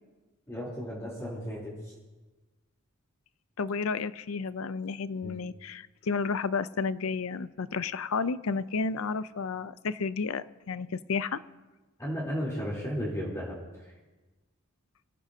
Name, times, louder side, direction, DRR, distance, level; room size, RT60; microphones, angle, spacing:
voice 1, 0.5-1.7 5.2-5.3 12.0-13.6, equal, 15° left, -6 dB, 3.5 m, -34 dB
voice 2, 3.6-11.4, left 4 dB, 75° left, 15 dB, 0.5 m, -32 dB
24.5 x 15.5 x 2.8 m, 1.2 s
head